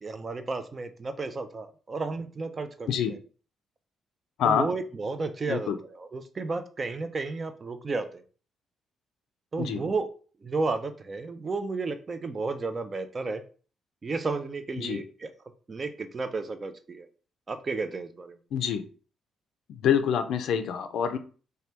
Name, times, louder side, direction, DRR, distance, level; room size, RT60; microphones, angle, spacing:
voice 1, 0.0-2.9 4.4-8.2 9.5-10.1 10.4-13.4 14.0-15.3 15.7-17.1 17.5-18.4, right 3 dB, 35° right, 9 dB, 0.4 m, -32 dB
voice 2, 18.5-18.8 19.7-21.2, left 8 dB, 75° left, 9 dB, 0.4 m, -26 dB
2.8 x 2.2 x 3.3 m, 0.39 s
cardioid pair, 90°, 0 cm